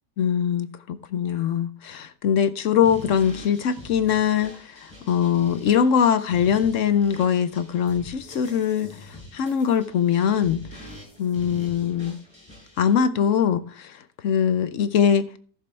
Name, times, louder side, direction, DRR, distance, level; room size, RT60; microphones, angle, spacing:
voice 1, 0.2-10.6 11.2-12.2 12.8-14.0 14.2-15.3, left 8 dB, 60° left, 0.9 m, -22 dB
sound 1, 2.8-12.9, left 1 dB, 15° left, 5.6 m, -44 dB
15.0 x 6.9 x 3.3 m
omnidirectional pair, 1.8 m